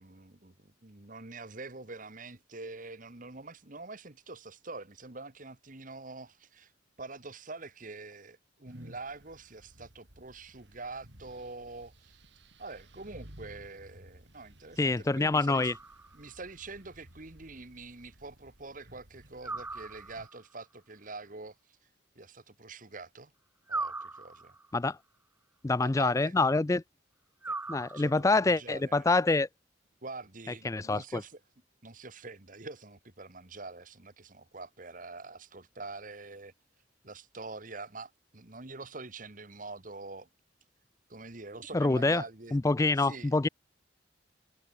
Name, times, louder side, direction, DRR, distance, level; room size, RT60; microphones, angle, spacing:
voice 1, 0.0-6.7 7.0-12.2 12.6-15.7 16.1-21.6 22.1-23.3 23.7-24.5 25.8-26.4 27.5-29.1 30.0-31.4 31.8-36.5 37.0-40.3 41.1-43.4, right 3 dB, 45° right, 1.7 m, -45 dB
sound 1, 8.7-20.3, right 1 dB, 65° right, 5.7 m, -56 dB
voice 2, 14.8-15.7 24.7-25.0 25.6-26.8 27.7-29.5 30.6-31.2 41.7-42.2 42.5-43.5, left 3 dB, 15° left, 0.3 m, -26 dB
sound 2, 15.5-16.3 19.4-20.5 23.7-24.8 27.4-28.4, right 3 dB, 10° right, 0.8 m, -39 dB
head